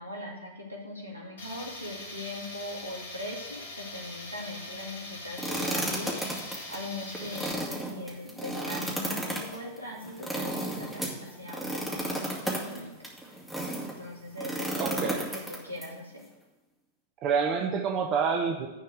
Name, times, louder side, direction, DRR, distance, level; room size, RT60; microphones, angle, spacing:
voice 1, 0.0-13.3 13.8-16.3, left 1 dB, 90° right, -2 dB, 2.4 m, -41 dB
Tools, 1.4-7.5, left 2 dB, 65° left, 1.9 m, -42 dB
sound 1, 5.4-13.9 14.4-15.8, right 1 dB, ahead, 2.5 m, -33 dB
voice 2, 14.8-15.3 17.2-18.7, right 6 dB, 35° right, 3 dB, 1.0 m, -27 dB
10.5 x 4.6 x 7.9 m, 1.0 s
figure-of-eight pair, 95°, 0 cm